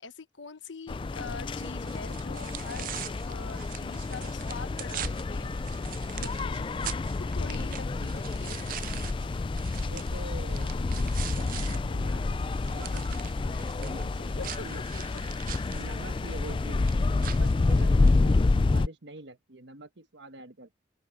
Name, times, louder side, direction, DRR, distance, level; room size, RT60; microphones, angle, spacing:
voice 1, 0.0-3.0 3.3-5.6 6.1-6.7 7.2-8.6 14.2-14.7 14.9-15.2 18.0-18.2, left 4 dB, 75° left, 1.2 m, -44 dB
sound 1, 0.9-18.9, left 3 dB, 25° left, 0.3 m, -29 dB
sound 2, 1.6-11.8 12.1-18.2, right 12 dB, 45° right, 0.4 m, -43 dB
voice 2, 7.4-7.7 9.8-14.8 15.7-20.7, right 2 dB, 65° right, 1.3 m, -46 dB
open air
head